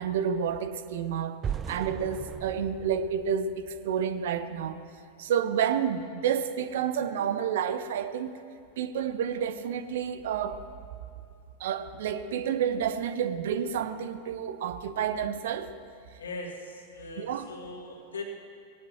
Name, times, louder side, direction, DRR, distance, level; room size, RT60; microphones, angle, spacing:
voice 1, 0.0-1.4 1.7-4.8 5.2-8.4 8.8-10.6 11.6-15.7 17.2-17.5, right 8 dB, 55° right, 12 dB, 0.8 m, -30 dB
sound 1, 1.4-4.4, right 7 dB, 25° right, 0.5 m, -38 dB
voice 2, 16.2-18.3, left 3 dB, 70° left, 1 dB, 2.4 m, -40 dB
20.5 x 18.0 x 3.2 m, 2.3 s
figure-of-eight pair, 90°, 0 cm